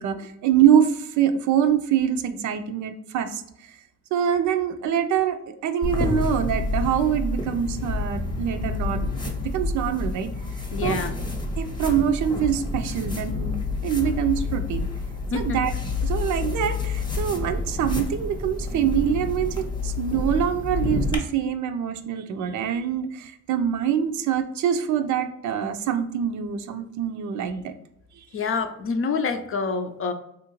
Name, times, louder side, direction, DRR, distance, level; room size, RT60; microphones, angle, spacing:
voice 1, 0.0-3.4 3.7-3.8 4.1-10.3 10.8-11.0 11.6-14.9 15.3-15.7 16.0-27.7, right 9 dB, 75° right, 8 dB, 0.5 m, -25 dB
sound 1, 5.8-21.2, left 3 dB, 15° left, 0.7 m, -28 dB
voice 2, 10.7-11.1 15.3-15.6 28.3-30.1, left 4 dB, 45° left, 7 dB, 0.5 m, -27 dB
3.6 x 2.5 x 3.0 m, 0.79 s
cardioid pair, 90°, 30 cm